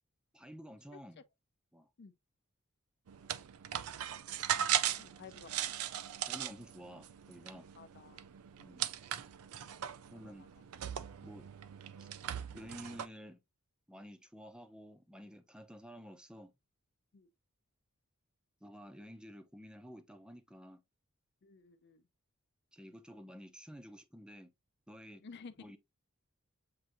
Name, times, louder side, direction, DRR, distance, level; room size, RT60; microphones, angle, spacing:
voice 1, 0.3-1.2 1.7-1.9 6.3-7.7 8.6-8.9 10.1-10.5 11.2-11.5 12.0-12.1 12.5-13.4 13.9-16.5 18.6-20.8 22.7-24.5 24.9-25.3 25.6-25.8, equal, 5° right, 0.5 m, -51 dB
voice 2, 0.9-1.2 2.0-2.1 5.0-5.7 7.7-8.2 10.1-10.5 17.1-17.3 21.4-22.0 25.2-25.7, left 5 dB, 50° left, 0.5 m, -54 dB
sound 1, 3.1-13.1, right 10 dB, 90° right, 0.4 m, -39 dB
7.5 x 2.6 x 2.6 m
head